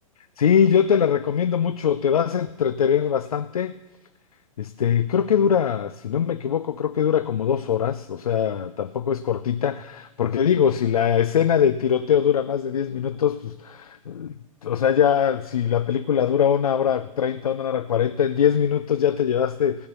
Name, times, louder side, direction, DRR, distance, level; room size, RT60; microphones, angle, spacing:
voice 1, 0.4-3.8 4.6-14.3 14.6-19.9, left 8 dB, 85° left, 12 dB, 0.5 m, -22 dB
16.0 x 7.0 x 6.8 m, 1.1 s
hypercardioid pair, 115°, 18 cm